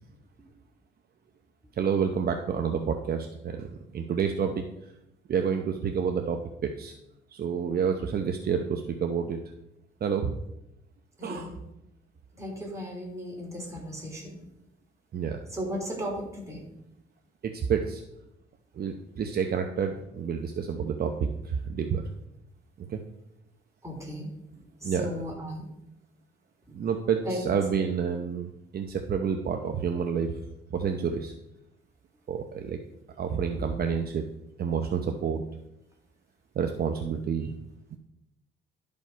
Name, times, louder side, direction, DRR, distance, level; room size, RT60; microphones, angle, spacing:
voice 1, 1.8-4.6 5.3-6.9 7.3-9.4 10.0-10.3 11.2-11.6 15.1-15.4 17.4-18.0 18.8-22.0 22.8-23.0 24.8-25.2 26.7-30.4 30.7-31.3 32.3-32.8 33.2-34.2 34.6-35.4 36.6-37.5, right 6 dB, 50° right, 5 dB, 0.8 m, -29 dB
voice 2, 11.2-11.5 12.4-14.3 15.5-16.6 23.8-24.3 24.8-25.6 27.2-27.4, equal, 15° right, -2 dB, 3.5 m, -35 dB
12.0 x 5.3 x 4.5 m, 0.86 s
cardioid pair, 90°, 20 cm